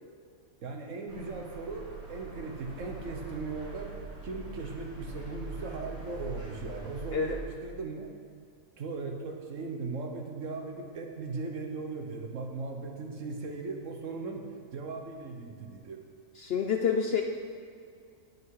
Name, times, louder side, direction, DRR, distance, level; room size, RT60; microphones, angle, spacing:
voice 1, 0.6-4.0 4.2-8.1 8.8-14.4 14.7-16.0, right 3 dB, 60° right, 3 dB, 1.4 m, -38 dB
sound 1, 1.1-7.4, right 2 dB, 90° right, 2.9 m, -43 dB
voice 2, 16.4-17.2, left 6 dB, 60° left, 3 dB, 0.7 m, -28 dB
17.0 x 5.8 x 4.8 m, 2.3 s
omnidirectional pair, 1.5 m